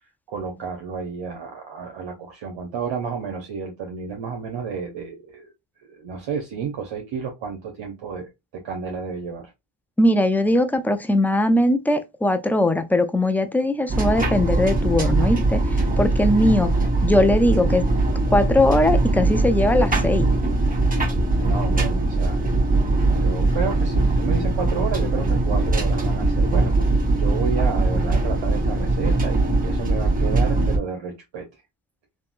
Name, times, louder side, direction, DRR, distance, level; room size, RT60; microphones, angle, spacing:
voice 1, 0.3-5.5 5.8-9.5 21.4-22.4 23.1-26.8 27.1-31.6, right 6 dB, 65° right, 0.8 m, -31 dB
voice 2, 10.0-15.6 16.0-16.7 17.0-17.8 18.3-20.3, left 1 dB, 5° left, 0.3 m, -20 dB
sound 1, 13.9-30.8, right 2 dB, 15° right, 1.0 m, -21 dB
3.5 x 2.1 x 2.4 m
cardioid pair, 65°, 48 cm